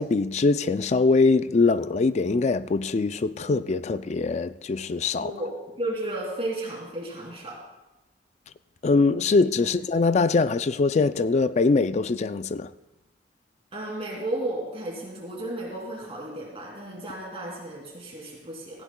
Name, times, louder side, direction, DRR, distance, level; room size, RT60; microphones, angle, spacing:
voice 1, 0.0-5.3 8.8-12.7, left 3 dB, 35° left, 0.3 m, -22 dB
voice 2, 5.2-7.6 9.6-9.8 13.7-18.8, right 1 dB, 30° right, 2.8 m, -33 dB
17.5 x 15.5 x 2.3 m
head